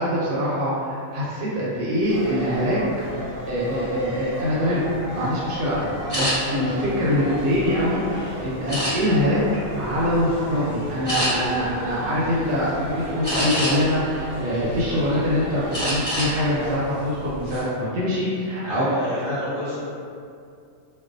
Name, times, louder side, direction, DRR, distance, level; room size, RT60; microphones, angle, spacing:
voice 1, 0.0-2.8 3.5-9.4 9.7-18.9 19.3-19.4, equal, 75° right, -7 dB, 1.0 m, -24 dB
sound 1, 2.0-16.8, equal, 85° left, 0.3 m, -34 dB
sound 2, 6.1-6.3 7.0-8.0 8.7-9.3 9.8-10.0 10.4-10.6 11.1-11.3 13.2-13.9 14.5-15.2 15.7-16.3 16.7-16.9 17.3-17.6, equal, 10° left, 1.0 m, -26 dB
voice 2, 18.6-19.8, equal, 50° left, -14 dB, 0.8 m, -28 dB
2.4 x 2.1 x 2.5 m, 2.3 s
omnidirectional pair, 1.5 m